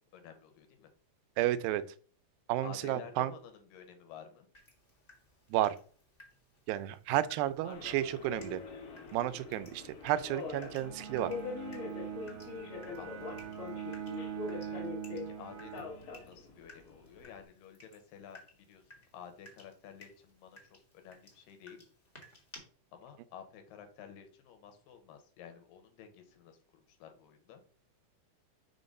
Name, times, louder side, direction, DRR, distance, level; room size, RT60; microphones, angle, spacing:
voice 1, 0.1-0.9 2.6-4.5 7.6-8.2 13.0-13.4 14.4-14.9 15.1-20.6 20.9-21.8 22.9-27.6, left 8 dB, 80° left, 7 dB, 2.7 m, -52 dB
voice 2, 1.4-1.8 2.5-3.3 5.5-5.8 6.7-8.6 9.1-11.3, right 13 dB, 85° right, 14 dB, 2.4 m, -32 dB
Water tap faucet / Drip, 4.5-22.6, left 2 dB, 30° left, 1.0 m, -59 dB
Subway metro underground, 7.7-17.4, left 5 dB, 55° left, 1.6 m, -44 dB
Bowed string instrument, 10.8-16.6, right 9 dB, 65° right, 1.5 m, -43 dB
5.7 x 3.8 x 5.4 m, 0.43 s
omnidirectional pair, 4.1 m